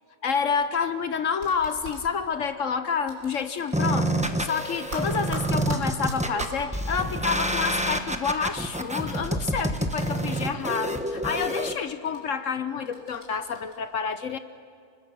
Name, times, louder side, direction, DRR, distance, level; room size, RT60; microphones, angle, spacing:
voice 1, 0.2-14.4, left 6 dB, 60° left, 10 dB, 1.2 m, -29 dB
sound 1, 1.3-2.0 3.1-4.0 4.3-6.6 7.9-10.6 10.9-11.5 12.0-12.2 12.8-13.7, right 1 dB, 70° right, 5.1 m, -41 dB
sound 2, 3.7-11.7, right 1 dB, 5° right, 1.0 m, -28 dB
30.0 x 21.0 x 6.4 m, 2.1 s
omnidirectional pair, 1.5 m